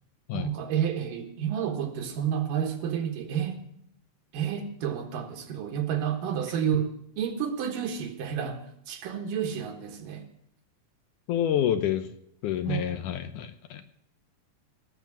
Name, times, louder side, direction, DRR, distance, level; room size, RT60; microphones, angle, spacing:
voice 1, 0.3-3.6 4.3-8.6 8.9-10.3 12.7-12.9, right 8 dB, 70° right, 5 dB, 3.1 m, -30 dB
voice 2, 11.3-12.1 12.4-13.8, left 10 dB, 75° left, 9 dB, 2.1 m, -28 dB
18.0 x 7.1 x 7.5 m, 0.72 s
omnidirectional pair, 4.1 m